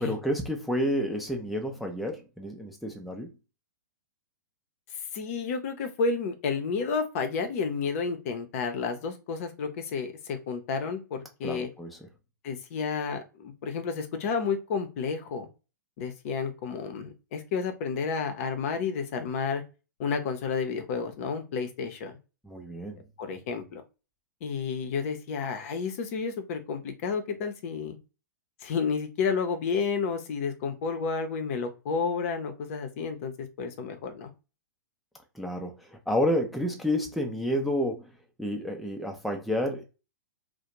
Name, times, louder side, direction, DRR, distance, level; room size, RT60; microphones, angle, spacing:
voice 1, 0.0-3.3 11.4-12.0 22.4-23.0 35.3-38.1 38.4-39.8, equal, ahead, 0.4 m, -30 dB
voice 2, 5.1-11.7 12.4-15.5 16.0-19.6 20.0-22.2 23.2-23.8 24.4-28.0 28.6-34.3, left 5 dB, 45° left, 0.6 m, -31 dB
2.4 x 2.0 x 2.9 m
figure-of-eight pair, 115°, 11 cm